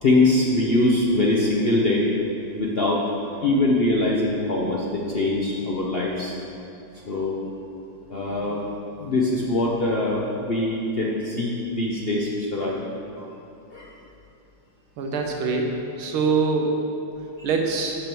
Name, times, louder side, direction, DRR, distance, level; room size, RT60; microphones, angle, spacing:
voice 1, 0.0-3.0 3.4-6.3 7.1-7.3 7.7-7.8 8.1-8.6 9.0-12.9 13.2-13.3 13.7-13.9 17.4-17.5, left 2 dB, 85° left, -4 dB, 0.5 m, -23 dB
voice 2, 15.0-15.7 16.0-16.7 17.4-18.0, right 4 dB, 85° right, 2 dB, 1.8 m, -23 dB
7.9 x 6.0 x 6.8 m, 2.8 s
omnidirectional pair, 2.3 m